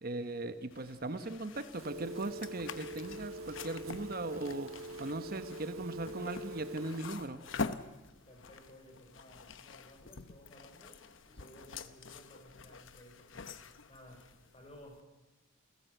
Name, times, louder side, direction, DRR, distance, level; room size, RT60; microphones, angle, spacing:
voice 1, 0.0-4.7 5.0-7.4, right 2 dB, 40° right, 10 dB, 0.9 m, -39 dB
sound 1, 0.7-15.0, left 4 dB, 60° left, 1.0 m, -46 dB
Telephone, 1.8-7.0, right 2 dB, 70° right, 1.4 m, -44 dB
voice 2, 8.3-15.0, equal, 25° left, 3 dB, 5.2 m, -57 dB
29.0 x 15.5 x 8.0 m, 1.1 s
head